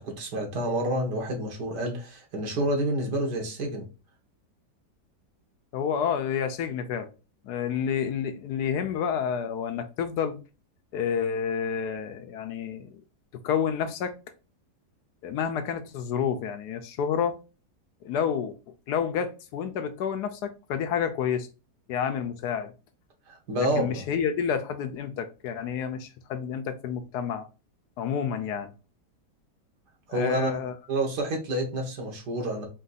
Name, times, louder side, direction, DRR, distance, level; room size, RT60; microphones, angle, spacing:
voice 1, 0.0-3.9 23.3-24.1 30.1-30.5 30.9-32.7, right 1 dB, 80° right, 1.9 m, -28 dB
voice 2, 5.7-7.1 7.4-10.4 10.9-13.0 13.4-14.1 15.2-17.4 18.0-18.5 18.9-21.5 21.9-22.7 23.8-27.5 28.0-28.7 30.1-30.7, left 7 dB, 75° left, 1.2 m, -29 dB
4.5 x 2.6 x 4.0 m
omnidirectional pair, 1.8 m